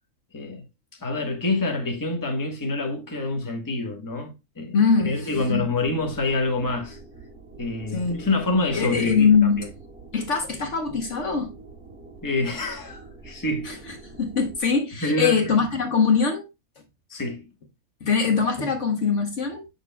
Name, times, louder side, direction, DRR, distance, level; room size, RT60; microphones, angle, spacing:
voice 1, 0.3-0.6 1.0-4.8 5.0-7.0 7.6-9.3 9.6-9.7 12.2-13.7 15.0-15.4 17.1-17.5, left 2 dB, 15° left, 1.1 m, -26 dB
voice 2, 4.7-5.7 7.9-8.2 8.7-9.7 10.1-11.5 13.6-16.5 18.0-19.7, left 5 dB, 55° left, 1.3 m, -22 dB
sound 1, 5.2-14.6, right 3 dB, 10° right, 1.6 m, -45 dB
7.3 x 6.4 x 2.2 m
omnidirectional pair, 1.5 m